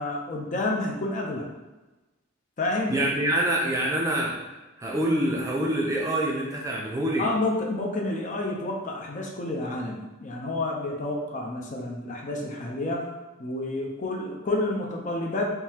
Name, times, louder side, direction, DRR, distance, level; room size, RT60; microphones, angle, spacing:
voice 1, 0.0-1.5 2.6-3.1 7.2-13.1 13.4-15.5, left 2 dB, 35° left, 0 dB, 0.5 m, -29 dB
voice 2, 2.9-4.4 4.8-7.3, right 1 dB, 15° right, -3 dB, 0.5 m, -26 dB
3.7 x 2.7 x 2.8 m, 1.1 s
head